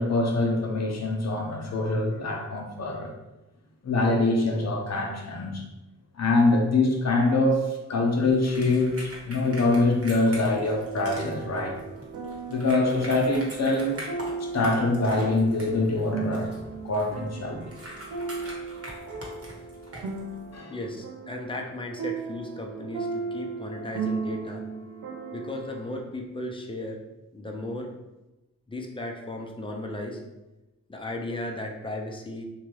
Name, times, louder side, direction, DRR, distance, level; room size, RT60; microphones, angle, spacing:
voice 1, 0.0-3.1 3.8-5.6 6.2-11.8 12.5-14.0 14.4-16.5 16.8-17.6 20.5-20.7, left 2 dB, 55° left, 1 dB, 0.7 m, -24 dB
sound 1, 8.2-20.6, right 1 dB, 45° right, 1.1 m, -43 dB
sound 2, 10.5-26.0, right 4 dB, 75° right, 0.5 m, -36 dB
voice 2, 20.7-24.6 25.3-27.0 27.3-27.9 28.7-30.2 30.9-32.4, left 1 dB, 15° left, 1 dB, 0.6 m, -35 dB
3.0 x 2.3 x 3.1 m, 1.0 s
cardioid pair, 40°, 33 cm